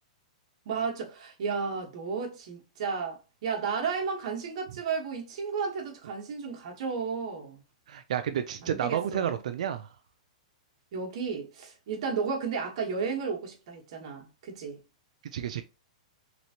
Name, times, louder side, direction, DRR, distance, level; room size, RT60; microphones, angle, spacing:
voice 1, 0.6-7.6 8.6-9.4 10.9-14.8, right 5 dB, 55° right, 1.0 m, -33 dB
voice 2, 7.9-9.9 15.3-15.6, right 9 dB, 70° right, 0.4 m, -30 dB
3.2 x 3.0 x 2.8 m
hypercardioid pair, 150°, 4 cm